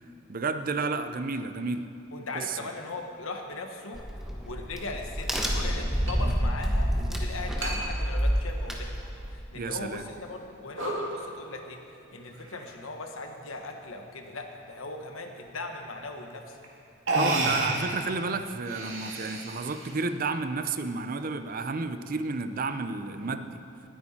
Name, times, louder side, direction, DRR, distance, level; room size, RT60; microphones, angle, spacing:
voice 1, 0.3-1.8 2.3-2.6 9.5-10.0 17.1-23.6, right 4 dB, 45° right, 10 dB, 0.5 m, -31 dB
voice 2, 2.1-4.0 4.4-8.9 9.3-11.8 12.1-16.6, left 2 dB, 80° left, 4 dB, 1.2 m, -39 dB
Crack, 3.9-9.4, equal, ahead, 1.1 m, -28 dB
sound 1, 4.4-4.5 6.1-6.2 6.5-6.6 7.6-7.8 8.2-9.0 9.5-9.6 10.2-10.4 10.7-11.0 12.3-12.8 13.6-14.0 15.9-16.0 16.6-16.7 17.0-18.0 18.5-19.9, right 2 dB, 65° right, 2.1 m, -31 dB
19.5 x 8.9 x 4.3 m, 2.6 s
head